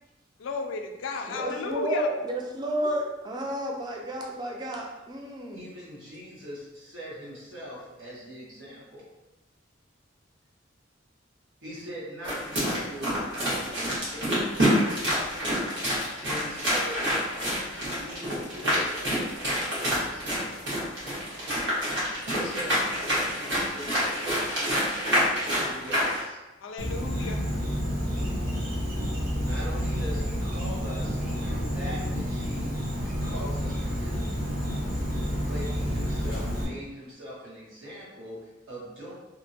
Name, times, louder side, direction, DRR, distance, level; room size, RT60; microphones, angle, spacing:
voice 1, 0.4-2.1 26.6-27.5, left 4 dB, 85° left, 5 dB, 0.3 m, -33 dB
voice 2, 1.3-5.6, right 1 dB, 20° right, 0 dB, 0.3 m, -31 dB
voice 3, 5.5-9.0 11.6-14.4 16.2-20.7 22.4-26.4 29.4-32.7 33.2-34.3 35.5-39.1, equal, 85° right, -7 dB, 1.2 m, -42 dB
sound 1, 12.2-26.2, equal, 70° right, 1.2 m, -27 dB
Insect, 26.8-36.6, equal, 50° right, 0.8 m, -29 dB
2.7 x 2.5 x 2.6 m, 1.0 s
head